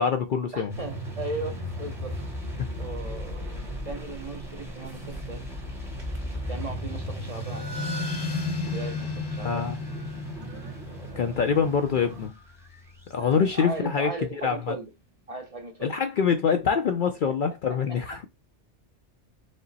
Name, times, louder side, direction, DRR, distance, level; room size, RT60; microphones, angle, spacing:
voice 1, 0.0-0.7 9.4-9.8 11.2-12.3 13.1-14.1 14.4-14.7 15.8-18.2, left 6 dB, 60° left, 0.5 m, -25 dB
voice 2, 0.5-2.2 2.8-5.5 6.5-7.7 8.6-9.7 13.1-14.9 15.3-16.0 17.2-17.3 17.7-17.8, right 2 dB, 35° right, 0.7 m, -37 dB
sound 1, 0.7-13.1, left 3 dB, ahead, 1.0 m, -35 dB
sound 2, 0.7-12.3, right 4 dB, 65° right, 1.5 m, -42 dB
sound 3, 6.9-14.0, equal, 25° left, 0.7 m, -43 dB
5.1 x 2.0 x 4.0 m
omnidirectional pair, 1.2 m